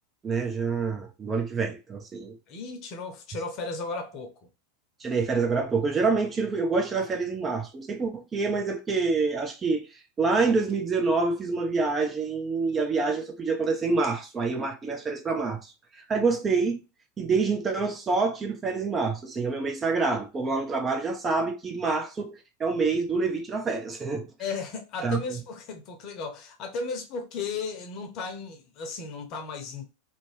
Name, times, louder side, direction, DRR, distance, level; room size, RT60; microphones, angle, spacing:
voice 1, 0.2-2.4 5.0-9.9 10.2-16.8 17.2-24.3 25.0-25.2, right 4 dB, 25° right, 0.7 m, -27 dB
voice 2, 2.5-4.3 24.4-29.8, left 4 dB, 45° left, 0.8 m, -35 dB
2.7 x 2.2 x 3.1 m
figure-of-eight pair, 90°, 0 cm